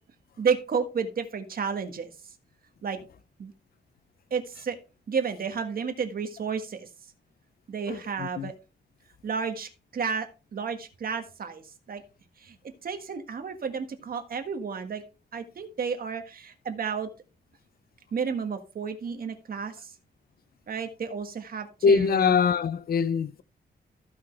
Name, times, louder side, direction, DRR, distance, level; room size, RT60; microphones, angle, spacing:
voice 1, 0.4-2.1 2.8-3.0 3.4-3.5 4.3-4.8 5.1-6.9 7.7-8.5 9.2-10.3 10.5-12.0 12.4-12.5 12.8-15.0 15.3-17.1 18.1-19.9 20.7-22.3, right 6 dB, 55° right, 1.5 m, -31 dB
voice 2, 7.9-8.5 21.8-23.4, left 6 dB, 55° left, 0.5 m, -23 dB
15.0 x 5.8 x 3.3 m
wide cardioid pair, 150°, 18 cm